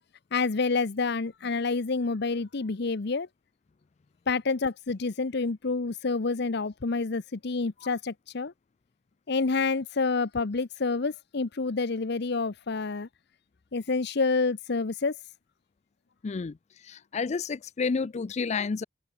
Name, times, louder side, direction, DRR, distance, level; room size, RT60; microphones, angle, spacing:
voice 1, 0.3-3.3 4.3-8.5 9.3-13.1 13.7-15.2, left 4 dB, 60° left, 0.8 m, -28 dB
voice 2, 16.2-16.5 16.9-18.8, left 4 dB, 35° left, 0.4 m, -30 dB
head